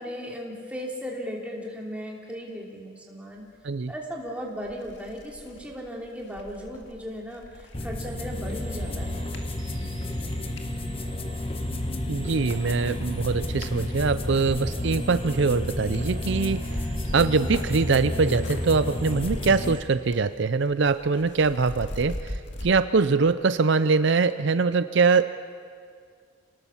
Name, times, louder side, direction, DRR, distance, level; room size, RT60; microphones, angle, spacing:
voice 1, 0.0-3.5 3.9-9.2, equal, 5° right, -2 dB, 3.1 m, -36 dB
sound 1, 4.1-4.2 4.6-10.7 11.3-11.9 12.2-18.7 18.9-20.3 20.6-22.7, left 1 dB, 60° left, 2.1 m, -41 dB
sound 2, 7.7-19.7, left 1 dB, 25° left, 1.3 m, -31 dB
sound 3, 8.0-19.8, right 1 dB, 40° right, 2.6 m, -42 dB
voice 2, 12.1-25.3, right 4 dB, 60° right, 12 dB, 0.5 m, -23 dB
28.0 x 19.0 x 7.3 m, 2.2 s
head